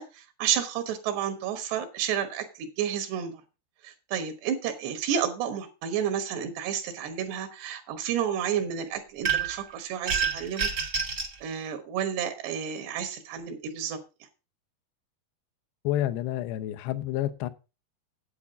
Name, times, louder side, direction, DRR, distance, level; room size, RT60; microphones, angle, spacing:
voice 1, 0.0-3.4 3.8-10.7 11.4-14.0, right 8 dB, 85° right, 7 dB, 3.4 m, -31 dB
sound 1, 9.2-9.6 10.1-11.3, right 6 dB, 60° right, 1.0 m, -27 dB
voice 2, 15.8-17.5, left 13 dB, 85° left, 10 dB, 3.0 m, -29 dB
9.6 x 8.4 x 4.9 m, 0.30 s
omnidirectional pair, 4.7 m